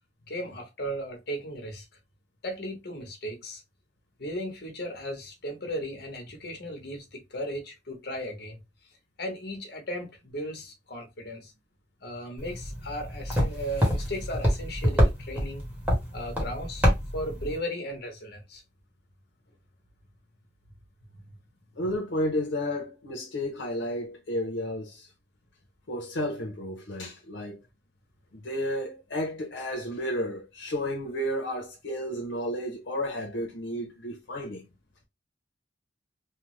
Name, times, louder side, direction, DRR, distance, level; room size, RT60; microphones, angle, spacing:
voice 1, 0.3-1.8 2.4-3.6 4.2-8.6 9.2-11.5 12.0-15.6 16.1-16.9 17.1-18.6, equal, 60° left, 1.0 m, -36 dB
sound 1, 12.4-17.6, equal, 10° right, 1.0 m, -27 dB
voice 2, 21.8-25.1 25.9-27.6 28.3-34.6, left 1 dB, 85° left, 0.7 m, -32 dB
3.3 x 2.0 x 3.0 m
head